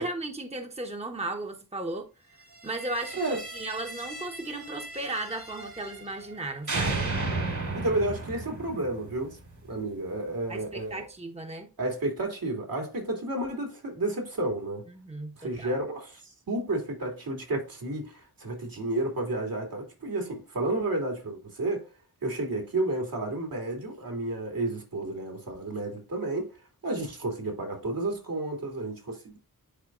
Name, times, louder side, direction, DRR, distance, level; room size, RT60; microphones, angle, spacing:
voice 1, 0.0-2.1 2.3-7.1 10.5-11.7 15.0-15.7, right 2 dB, 15° right, 1.1 m, -36 dB
sound 1, 2.5-6.4 6.7-9.7, right 3 dB, 55° right, 2.3 m, -35 dB
voice 2, 7.7-9.4 9.7-11.0 11.8-14.8 15.4-16.2 16.5-21.9 22.2-26.5 26.8-29.4, right 2 dB, 70° right, 2.7 m, -31 dB
10.5 x 4.4 x 2.5 m
wide cardioid pair, 75°, 36 cm